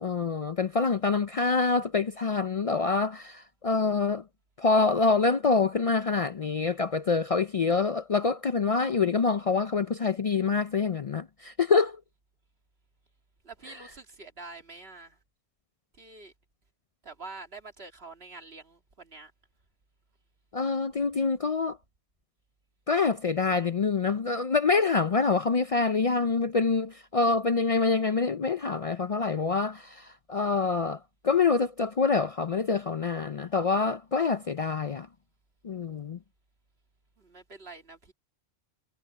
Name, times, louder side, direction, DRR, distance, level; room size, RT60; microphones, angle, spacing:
voice 1, 0.0-4.2 4.6-12.0 20.5-21.8 22.9-35.1 35.6-36.2, left 4 dB, 45° left, 0.4 m, -26 dB
voice 2, 13.4-15.2 16.0-16.3 17.0-19.3 37.2-38.1, right 3 dB, 65° right, 2.5 m, -46 dB
omnidirectional pair, 1.1 m